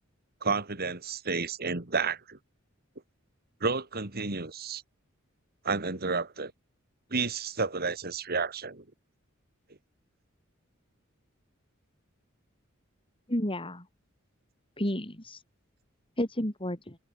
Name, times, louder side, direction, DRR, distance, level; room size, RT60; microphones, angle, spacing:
voice 1, 0.4-2.4 3.6-4.8 5.6-6.5 7.1-8.8, right 4 dB, 50° right, 2.6 m, -31 dB
voice 2, 13.3-13.9 14.8-15.4 16.2-17.0, left 1 dB, 25° left, 4.7 m, -31 dB
head